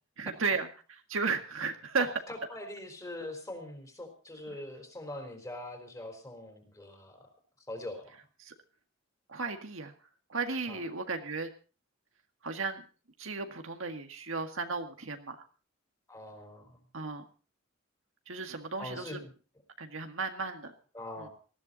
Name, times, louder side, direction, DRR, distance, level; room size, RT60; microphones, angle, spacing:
voice 1, 0.2-0.7 1.1-2.1 8.4-8.5 9.3-9.9 10.3-11.5 12.4-12.9 13.2-15.4 16.9-17.2 18.3-19.2 19.8-20.7 21.2-21.3, right 4 dB, 75° right, 6 dB, 1.9 m, -34 dB
voice 2, 2.3-7.3 7.6-8.2 10.7-10.8 16.1-16.8 18.8-19.3 20.9-21.3, left 1 dB, 15° left, 5 dB, 4.0 m, -43 dB
19.5 x 14.5 x 4.0 m, 0.37 s
head